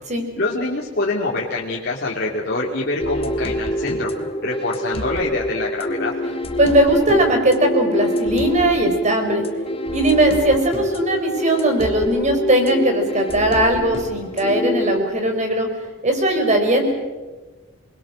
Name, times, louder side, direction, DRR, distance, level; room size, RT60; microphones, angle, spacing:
voice 1, 0.4-4.1 4.4-6.1, left 2 dB, 55° left, -4 dB, 2.7 m, -25 dB
sound 1, 3.0-15.0, equal, 30° left, 1.7 m, -26 dB
voice 2, 6.6-9.4 9.9-15.7 16.0-16.9, right 1 dB, 35° right, 4 dB, 4.7 m, -18 dB
28.5 x 21.0 x 6.4 m, 1.3 s
head